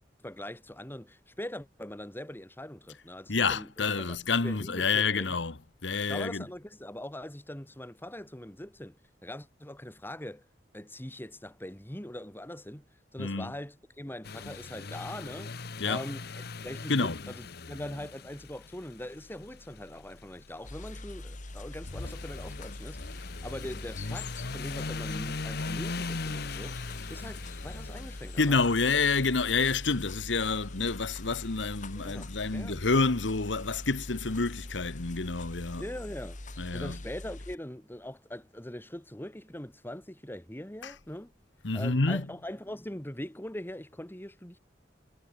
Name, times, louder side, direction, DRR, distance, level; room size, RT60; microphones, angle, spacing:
voice 1, 0.2-4.2 4.4-5.4 6.1-9.0 9.2-10.5 10.7-12.8 13.1-28.6 31.9-32.8 35.8-41.3 41.7-44.6, left 1 dB, 10° left, 2.4 m, -42 dB
voice 2, 3.3-6.4 13.2-13.5 15.8-16.0 16.9-17.2 28.4-35.9 36.6-37.0 40.8-41.0 41.6-42.3, left 4 dB, 90° left, 1.3 m, -28 dB
sound 1, 14.2-33.1, left 3 dB, 60° left, 1.0 m, -41 dB
sound 2, 20.6-37.6, left 2 dB, 45° left, 1.8 m, -43 dB
head